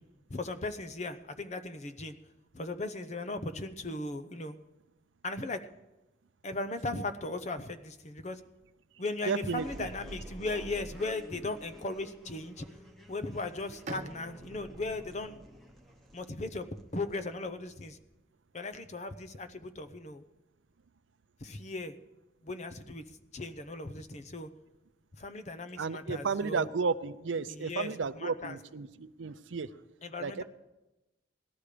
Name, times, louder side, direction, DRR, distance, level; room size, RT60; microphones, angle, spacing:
voice 1, 0.3-2.2 2.5-4.6 5.2-5.6 6.4-8.4 9.0-12.6 13.1-15.4 16.1-16.7 16.9-18.0 18.5-20.2 21.4-22.0 22.4-24.5 25.2-26.7 27.5-27.9 28.2-28.6 30.0-30.4, left 2 dB, 35° left, 9 dB, 0.8 m, -37 dB
voice 2, 9.3-9.9 25.8-29.8 30.2-30.4, right 5 dB, 80° right, 13 dB, 0.6 m, -33 dB
sound 1, 9.5-18.1, equal, ahead, 1.2 m, -50 dB
Bowed string instrument, 13.9-17.5, right 2 dB, 40° right, 0.9 m, -49 dB
18.5 x 12.0 x 5.0 m, 1.0 s
head